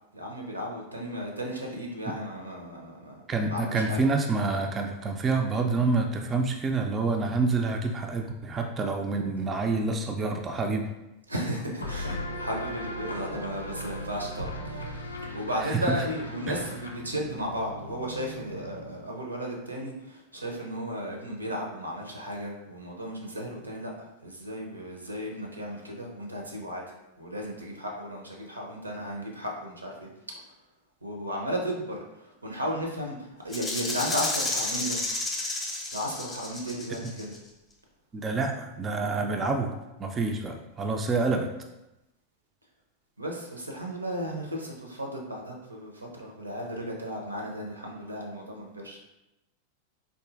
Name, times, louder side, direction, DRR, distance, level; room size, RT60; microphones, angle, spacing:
voice 1, 0.1-3.2 3.5-4.0 11.3-26.9 27.2-30.1 31.0-35.0 35.9-37.3 43.2-49.0, equal, 80° right, 0 dB, 0.6 m, -35 dB
voice 2, 3.3-10.9 15.6-16.0 16.5-16.6 37.0-37.1 38.1-39.7 40.0-41.5, right 3 dB, 20° right, 3 dB, 0.3 m, -27 dB
sound 1, 11.8-19.2, left 1 dB, 80° left, 0.4 m, -38 dB
Rattle (instrument), 33.5-37.4, left 2 dB, 15° left, 0.6 m, -31 dB
3.6 x 2.6 x 2.4 m, 0.94 s
figure-of-eight pair, 90°, 0 cm